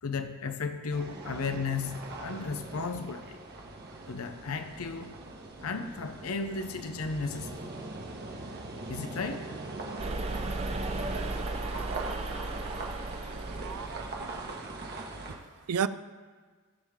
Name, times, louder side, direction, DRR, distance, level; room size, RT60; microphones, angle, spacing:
voice 1, 0.0-3.4 4.1-5.2 5.6-7.7 8.9-9.5, left 4 dB, 75° left, 0.6 m, -34 dB
sound 1, 0.9-15.3, right 2 dB, 50° right, 1.4 m, -41 dB
sound 2, 10.0-14.5, right 2 dB, 30° right, 0.7 m, -36 dB
voice 2, 13.3-14.2 15.3-15.4 15.7-15.9, right 7 dB, 80° right, 0.4 m, -33 dB
16.5 x 7.3 x 3.6 m
head